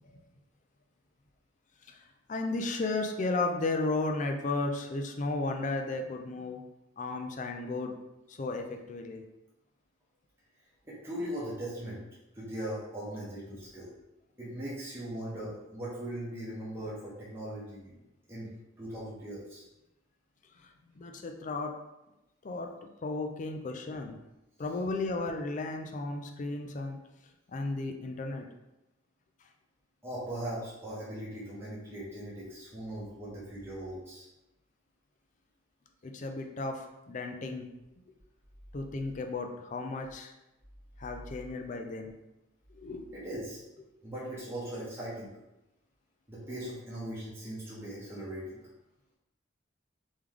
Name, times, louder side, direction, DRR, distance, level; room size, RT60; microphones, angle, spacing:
voice 1, 2.3-6.6 7.0-7.9 8.3-9.2 20.6-21.7 22.4-22.7 23.0-24.2 24.6-27.0 27.5-28.5 36.0-37.7 38.7-40.3 41.0-42.1 42.8-43.0, left 2 dB, 40° left, 4 dB, 0.4 m, -34 dB
voice 2, 10.8-12.0 12.3-13.9 14.4-18.0 18.3-18.5 18.8-19.6 30.0-34.3 43.1-43.6 44.0-45.3 46.3-48.6, right 1 dB, 15° right, -8 dB, 0.9 m, -39 dB
3.4 x 3.1 x 3.6 m, 0.96 s
head